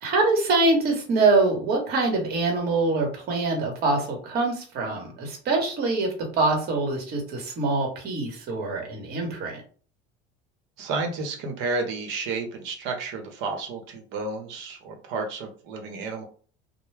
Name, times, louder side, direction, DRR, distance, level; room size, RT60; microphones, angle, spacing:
voice 1, 0.0-9.6, right 3 dB, 50° right, 2 dB, 1.1 m, -24 dB
voice 2, 10.8-16.2, right 3 dB, 65° right, 3 dB, 0.9 m, -31 dB
2.2 x 2.1 x 3.2 m, 0.41 s
supercardioid pair, 120°, 21 cm